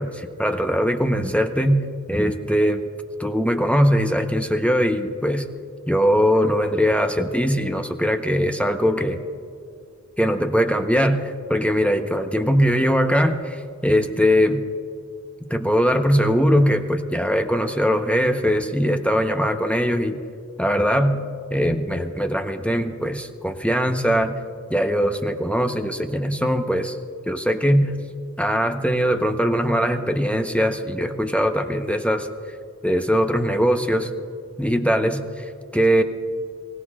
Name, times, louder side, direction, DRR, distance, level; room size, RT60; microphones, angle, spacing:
voice 1, 0.0-2.8 3.2-5.4 5.9-9.2 10.2-14.7 15.5-20.2 20.6-24.4 24.7-27.0 27.3-27.9 28.4-32.3 32.8-34.1 34.6-36.0, equal, 5° left, 5 dB, 0.9 m, -21 dB
24.5 x 17.0 x 2.5 m, 2.3 s
wide cardioid pair, 50°, 29 cm